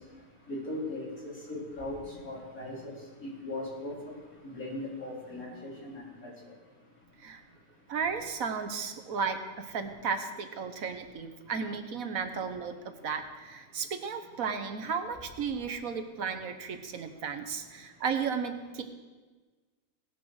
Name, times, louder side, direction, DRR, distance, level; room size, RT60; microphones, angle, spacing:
voice 1, 0.5-2.9 3.2-3.9 4.5-6.3, left 1 dB, 70° left, -5 dB, 4.2 m, -38 dB
voice 2, 7.9-12.7 13.0-18.8, right 6 dB, 70° right, 8 dB, 1.4 m, -34 dB
18.5 x 6.8 x 6.3 m, 1.3 s
omnidirectional pair, 1.5 m